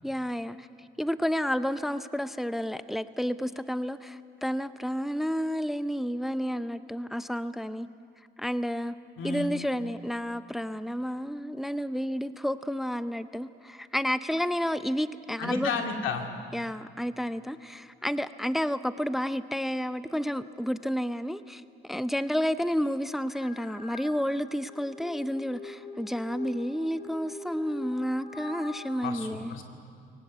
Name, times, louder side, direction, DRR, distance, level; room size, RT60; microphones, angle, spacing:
voice 1, 0.0-0.7 1.0-7.9 8.4-8.9 9.2-15.8 16.5-29.5, equal, ahead, 13 dB, 0.6 m, -31 dB
voice 2, 9.2-9.5 15.4-16.2 29.0-29.6, left 5 dB, 85° left, 3 dB, 2.3 m, -32 dB
sound 1, 23.3-24.1 24.6-28.6, left 3 dB, 45° left, 6.6 m, -43 dB
22.0 x 18.5 x 8.3 m, 2.4 s
cardioid pair, 90°, 20 cm